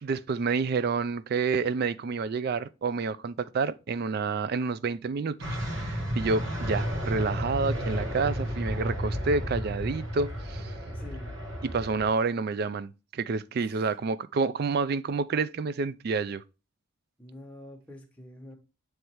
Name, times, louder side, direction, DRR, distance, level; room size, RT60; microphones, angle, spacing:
voice 1, 0.0-10.8 11.6-16.4, right 4 dB, 45° right, 0.3 m, -29 dB
sound 1, 5.4-12.1, equal, 65° right, 1.4 m, -32 dB
voice 2, 10.9-11.3 17.2-18.5, left 1 dB, 5° left, 1.2 m, -46 dB
7.9 x 3.2 x 4.5 m
head